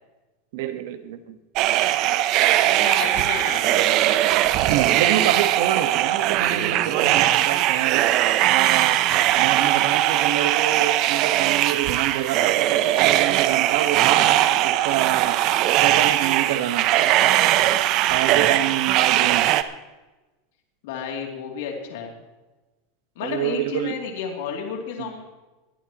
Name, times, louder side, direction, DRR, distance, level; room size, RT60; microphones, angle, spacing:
voice 1, 0.5-1.4 4.7-8.1 8.5-9.0 9.3-14.3 14.6-15.4 15.8-16.9 18.1-19.5 23.2-24.0 25.0-25.1, right 11 dB, 70° right, 9 dB, 1.4 m, -27 dB
sound 1, 1.6-19.6, right 14 dB, 45° right, 0.7 m, -20 dB
voice 2, 2.6-3.9 20.8-22.1 23.2-25.2, left 6 dB, 75° left, 1 dB, 2.8 m, -32 dB
21.0 x 13.0 x 3.0 m, 1.1 s
supercardioid pair, 145°, 0 cm